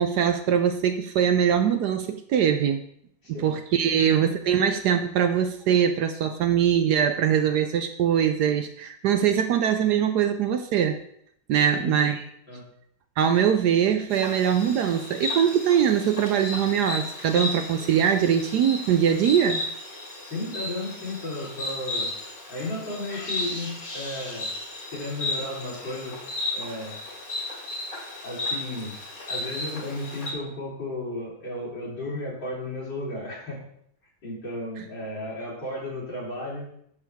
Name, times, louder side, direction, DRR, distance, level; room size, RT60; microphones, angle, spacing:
voice 1, 0.0-2.8 3.4-11.0 11.5-12.2 13.2-19.6, right 8 dB, 70° right, 8 dB, 1.0 m, -22 dB
voice 2, 3.2-3.5 3.8-4.2 11.7-12.2 12.5-12.6 20.2-22.1 22.5-24.5 24.9-26.2 26.5-27.0 28.2-29.0 29.3-33.6 34.2-36.7, left 1 dB, 75° left, -6 dB, 4.3 m, -34 dB
Insect, 14.1-30.3, left 2 dB, 45° left, 2.6 m, -34 dB
10.5 x 6.5 x 3.5 m, 0.70 s
omnidirectional pair, 2.0 m